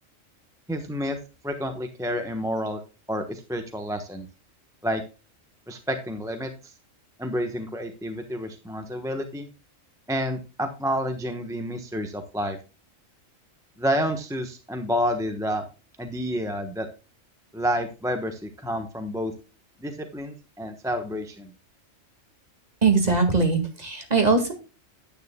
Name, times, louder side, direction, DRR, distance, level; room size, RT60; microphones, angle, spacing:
voice 1, 0.7-1.2 1.4-2.8 3.1-4.3 4.8-5.0 5.7-6.5 7.2-9.5 10.1-12.6 13.8-15.6 16.0-16.9 17.5-19.3 19.8-21.5, equal, 5° right, 6 dB, 1.0 m, -29 dB
voice 2, 22.8-24.5, right 4 dB, 30° right, 4 dB, 2.1 m, -21 dB
10.5 x 9.6 x 2.2 m, 0.31 s
omnidirectional pair, 1.4 m